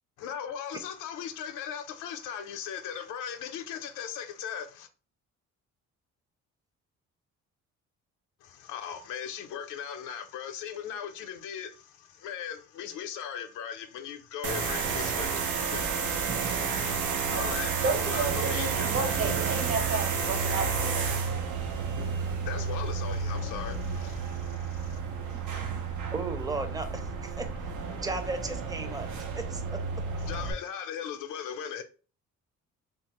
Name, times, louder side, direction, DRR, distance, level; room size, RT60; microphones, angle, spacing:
voice 1, 0.2-4.9 8.4-15.9 17.3-17.7 18.1-18.9 22.4-25.0 30.3-31.8, left 8 dB, 90° left, 0.5 m, -38 dB
sound 1, 14.4-30.5, right 5 dB, 90° right, 0.6 m, -31 dB
voice 2, 17.8-21.0 21.3-21.4, right 3 dB, 50° right, 1.1 m, -32 dB
voice 3, 26.1-27.7 28.0-29.8, right 3 dB, 10° right, 0.5 m, -35 dB
3.2 x 2.4 x 2.9 m
cardioid pair, 90°, 30 cm